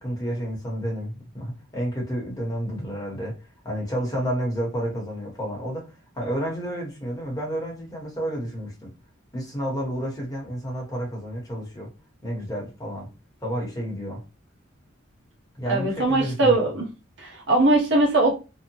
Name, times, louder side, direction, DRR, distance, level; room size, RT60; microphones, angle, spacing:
voice 1, 0.0-3.4 3.6-8.9 9.3-11.9 12.2-13.1 13.4-14.2 15.6-16.5, equal, 15° left, 1.0 m, -30 dB
voice 2, 15.7-16.9 17.2-18.4, right 2 dB, 60° right, 1.0 m, -20 dB
2.7 x 2.1 x 2.8 m
head